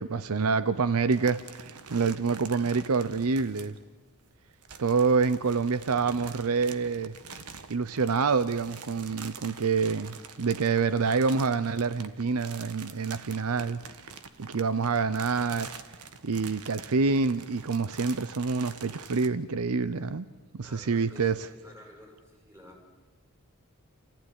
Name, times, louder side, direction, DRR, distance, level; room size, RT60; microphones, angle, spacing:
voice 1, 0.0-3.8 4.8-7.1 7.7-14.1 14.4-15.7 16.2-20.3 20.5-21.5, right 4 dB, 70° right, 0.7 m, -27 dB
sound 1, 1.1-3.8 4.5-19.3, right 6 dB, 85° right, 1.4 m, -46 dB
voice 2, 20.6-22.9, left 1 dB, 15° right, 5.7 m, -52 dB
28.5 x 15.0 x 9.8 m
head